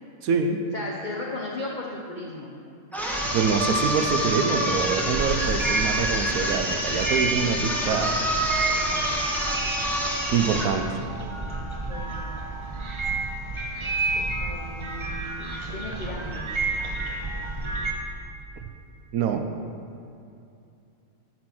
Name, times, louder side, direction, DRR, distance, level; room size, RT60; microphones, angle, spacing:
voice 1, 0.2-0.6 3.3-8.1 10.3-11.0 19.1-19.4, right 6 dB, 90° right, 6 dB, 1.2 m, -25 dB
voice 2, 0.7-2.5 11.1-12.4 13.8-16.5, left 2 dB, 35° left, -2 dB, 1.0 m, -37 dB
sound 1, 2.9-10.8, equal, ahead, 1.4 m, -27 dB
sound 2, 4.7-17.9, right 3 dB, 25° right, 1.0 m, -31 dB
14.0 x 6.3 x 6.0 m, 2.6 s
omnidirectional pair, 1.5 m